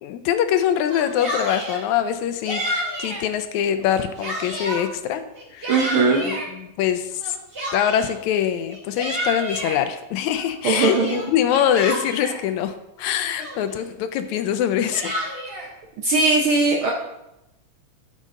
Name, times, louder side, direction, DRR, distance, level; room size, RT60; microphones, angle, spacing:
voice 1, 0.0-2.6 3.0-5.2 5.5-5.7 6.2-7.4 7.7-15.1, left 9 dB, 80° left, 9 dB, 2.0 m, -23 dB
Yell, 0.8-1.8 2.4-3.2 3.8-4.8 5.3-6.5 7.2-8.2 8.7-9.8 10.3-12.4 13.0-13.1 13.4-13.9 14.6-15.7, equal, 25° right, 2.6 m, -30 dB
voice 2, 5.7-6.3 10.6-11.2 16.0-16.9, right 3 dB, 65° right, 0 dB, 1.3 m, -19 dB
13.0 x 6.5 x 3.7 m, 0.88 s
omnidirectional pair, 3.4 m